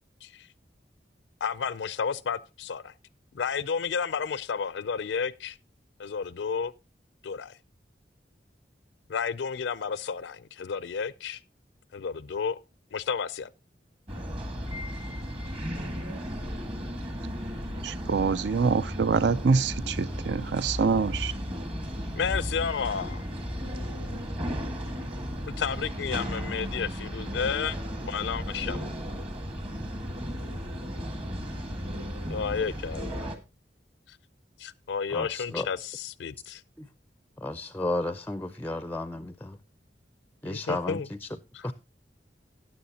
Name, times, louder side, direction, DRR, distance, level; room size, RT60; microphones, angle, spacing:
voice 1, 1.4-2.9 3.3-5.6 6.0-6.7 7.2-7.6 9.1-11.4 11.9-12.6 12.9-13.5 22.2-23.2 25.6-28.9 32.3-33.3 34.1-34.2 34.6-36.6 40.4-41.1 41.5-41.7, left 6 dB, 90° left, 0.4 m, -32 dB
sound 1, 14.1-33.4, equal, 35° right, 1.7 m, -35 dB
voice 2, 17.8-21.3, right 5 dB, 75° right, 0.5 m, -25 dB
voice 3, 35.1-35.7 36.8-36.9 37.4-39.6 40.4-41.3 41.6-41.7, left 2 dB, 10° left, 0.4 m, -33 dB
13.5 x 9.3 x 2.8 m
head